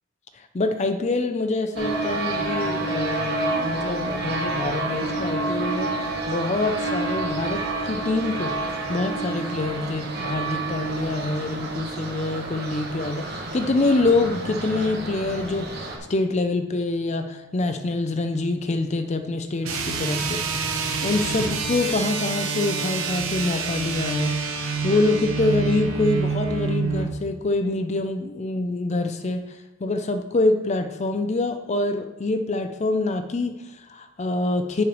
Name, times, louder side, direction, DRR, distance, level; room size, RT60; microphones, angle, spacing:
voice 1, 0.3-5.9 6.3-8.6 8.9-34.8, left 2 dB, 30° left, 8 dB, 0.5 m, -26 dB
sound 1, 1.8-16.0, right 2 dB, 50° right, 1.3 m, -29 dB
sound 2, 19.6-27.2, right 4 dB, 75° right, 1.0 m, -27 dB
10.0 x 5.9 x 3.1 m, 1.1 s
head